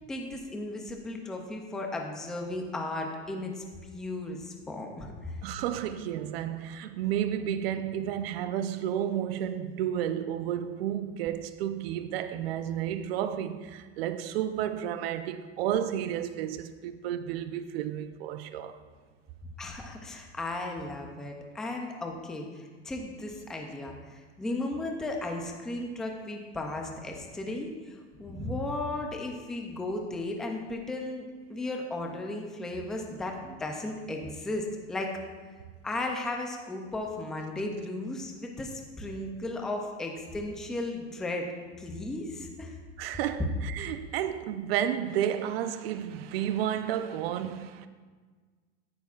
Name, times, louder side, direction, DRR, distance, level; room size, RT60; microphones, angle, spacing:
voice 1, 0.1-3.6 3.9-5.4 19.6-35.1 35.8-41.5 41.8-42.8, left 2 dB, ahead, 0.3 m, -35 dB
voice 2, 5.4-18.8 43.0-47.9, right 10 dB, 60° right, 0.6 m, -32 dB
14.0 x 10.5 x 2.4 m
supercardioid pair, 160°, 34 cm